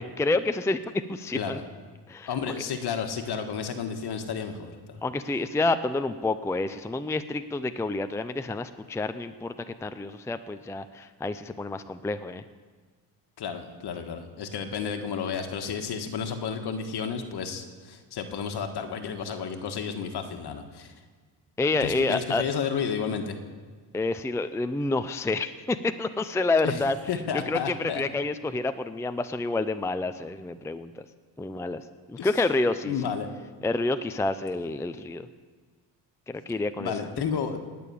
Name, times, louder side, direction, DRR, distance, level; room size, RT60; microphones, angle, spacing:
voice 1, 0.0-1.6 2.1-2.5 5.0-12.4 21.6-22.4 23.9-27.0 27.5-30.9 31.4-33.1 33.6-35.3 36.3-36.9, left 2 dB, 5° left, 10 dB, 0.5 m, -28 dB
voice 2, 1.3-1.6 2.3-5.0 13.4-20.9 21.8-23.4 26.6-26.8 27.1-28.0 32.2-32.3 32.8-33.3 36.8-37.6, left 6 dB, 60° left, 5 dB, 1.6 m, -32 dB
19.5 x 6.9 x 8.6 m, 1.5 s
cardioid pair, 100°, 44 cm